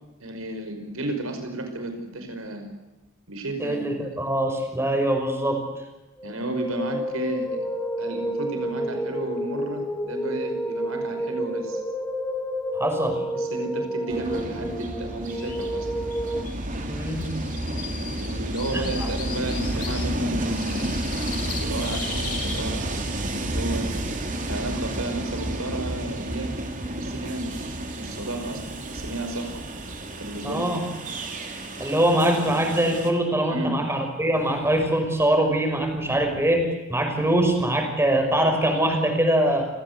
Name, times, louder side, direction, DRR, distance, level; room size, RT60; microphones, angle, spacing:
voice 1, 0.2-2.7 3.3-3.8 6.2-7.7 8.0-11.8 13.3-16.0 18.1-20.9 21.6-23.9 24.4-26.6 26.9-28.6 28.9-29.5 30.2-30.7 33.5-33.8, right 1 dB, 90° right, 6 dB, 5.5 m, -32 dB
voice 2, 3.6-5.6 12.7-13.2 16.9-17.3 18.7-19.1 30.4-30.8 31.8-39.7, right 1 dB, 10° right, 3 dB, 5.8 m, -23 dB
sound 1, 6.2-16.4, equal, 10° left, 2.4 m, -30 dB
Train, 14.1-33.1, right 1 dB, 40° right, 3.4 m, -31 dB
sound 2, 15.3-15.6 16.1-16.2 16.4-16.5 16.9-20.0 20.5-22.6, left 6 dB, 45° left, 7.2 m, -37 dB
29.5 x 17.0 x 8.2 m, 1.1 s
head